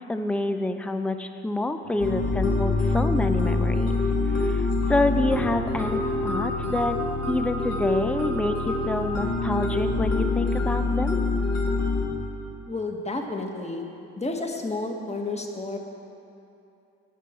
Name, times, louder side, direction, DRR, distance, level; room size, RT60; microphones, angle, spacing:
voice 1, 0.1-4.0 4.4-7.0 7.3-11.2, left 2 dB, 5° left, 8 dB, 0.6 m, -27 dB
sound 1, 1.9-10.3, left 3 dB, 80° left, 1.4 m, -35 dB
sound 2, 2.0-12.0, left 3 dB, 55° left, 2.3 m, -26 dB
voice 2, 12.7-13.9 14.2-15.8, left 2 dB, 20° left, 2 dB, 1.6 m, -31 dB
18.5 x 6.1 x 4.5 m, 2.7 s
hypercardioid pair, 50°, 31 cm